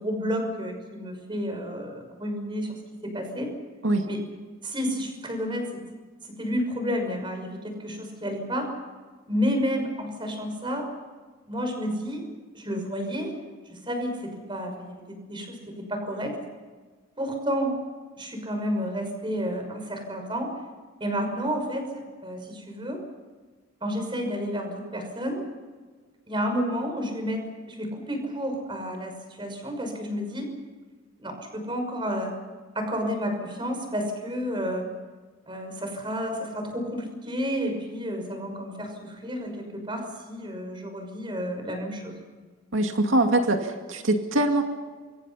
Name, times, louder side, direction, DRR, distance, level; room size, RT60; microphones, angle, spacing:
voice 1, 0.0-2.8 3.0-3.5 4.1-4.2 4.6-5.8 6.4-8.7 9.3-10.9 11.5-12.3 12.5-13.3 13.7-16.4 17.2-17.8 18.2-20.5 21.0-23.0 23.8-25.5 26.3-30.5 31.2-32.3 32.7-34.9 35.5-42.2, equal, 25° right, 4 dB, 5.9 m, -31 dB
voice 2, 42.7-44.6, right 1 dB, 85° right, 4 dB, 2.3 m, -23 dB
28.0 x 25.0 x 5.7 m, 1.4 s
head